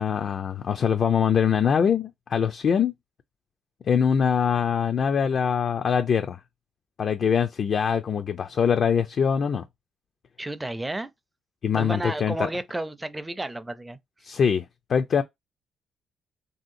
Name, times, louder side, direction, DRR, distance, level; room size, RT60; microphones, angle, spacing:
voice 1, 0.0-2.9 3.9-6.4 7.0-9.6 11.6-12.5 14.2-15.2, left 7 dB, 55° left, 0.3 m, -23 dB
voice 2, 10.4-11.1 11.7-14.0, right 1 dB, 15° right, 0.4 m, -32 dB
3.1 x 2.8 x 2.5 m
cardioid pair, 90°, 0 cm